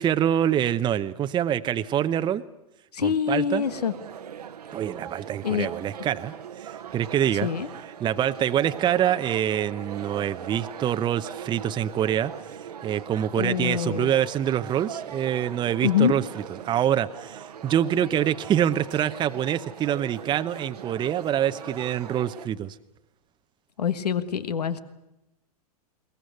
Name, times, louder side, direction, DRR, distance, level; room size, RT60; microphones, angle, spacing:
voice 1, 0.0-2.4 3.0-3.6 4.7-7.5 8.0-12.3 12.6-16.2 16.6-22.8, right 10 dB, 25° right, 11 dB, 0.8 m, -25 dB
voice 2, 2.9-3.9 5.4-5.7 7.4-7.7 13.4-14.1 15.8-16.2 23.8-24.8, left 8 dB, 85° left, 12 dB, 1.5 m, -25 dB
sound 1, 3.6-22.5, right 8 dB, 85° right, 1.2 m, -40 dB
22.0 x 19.5 x 9.4 m, 0.93 s
hypercardioid pair, 115°, 20 cm